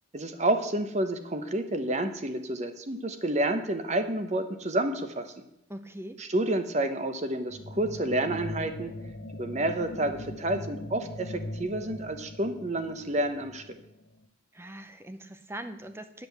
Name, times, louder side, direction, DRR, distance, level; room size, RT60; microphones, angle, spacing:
voice 1, 0.1-5.3 6.2-8.9 9.4-13.8, right 1 dB, 35° right, 8 dB, 0.9 m, -29 dB
voice 2, 5.7-6.2 14.5-16.3, right 1 dB, 10° right, 9 dB, 0.7 m, -41 dB
sound 1, 7.5-14.3, left 1 dB, 55° left, 0.7 m, -41 dB
10.0 x 5.1 x 7.9 m, 0.82 s
head